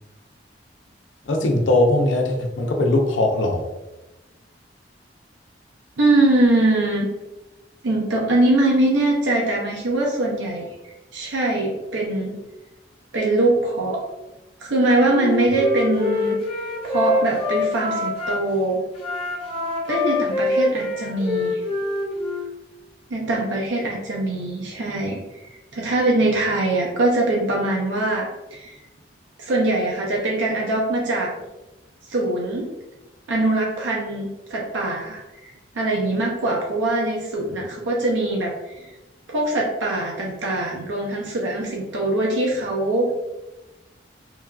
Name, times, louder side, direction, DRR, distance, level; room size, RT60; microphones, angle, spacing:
voice 1, 1.3-3.7, left 2 dB, 85° left, 1 dB, 0.5 m, -20 dB
voice 2, 6.0-7.1 7.8-12.4 13.1-14.0 14.6-16.4 16.8-18.8 19.9-21.6 23.1-25.2 25.7-28.8 29.4-31.3 32.1-32.7 33.3-38.9 39.3-43.1, right 2 dB, 80° right, -2 dB, 0.5 m, -22 dB
Wind instrument woodwind instrument, 15.1-18.4 18.9-22.5, left 3 dB, 30° left, 0.4 m, -25 dB
3.1 x 2.3 x 2.3 m, 1.0 s
head